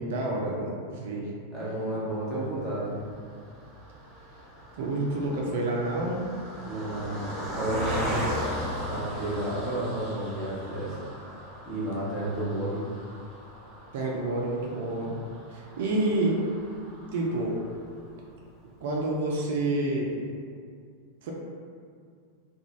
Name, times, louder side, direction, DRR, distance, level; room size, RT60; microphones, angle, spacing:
voice 1, 0.0-1.3 4.8-6.2 13.9-15.2 15.5-16.4 17.1-17.6 18.8-20.2 21.2-21.3, right 2 dB, 55° right, -2 dB, 0.4 m, -28 dB
voice 2, 1.5-3.0 6.7-8.3 8.8-11.0 11.6-12.8, right 1 dB, 20° left, -10 dB, 1.1 m, -32 dB
Car passing by, 2.5-18.0 18.5-18.6 18.9-19.1, equal, 20° right, 0.8 m, -38 dB
2.5 x 2.2 x 3.0 m, 2.2 s
figure-of-eight pair, 90°, 0 cm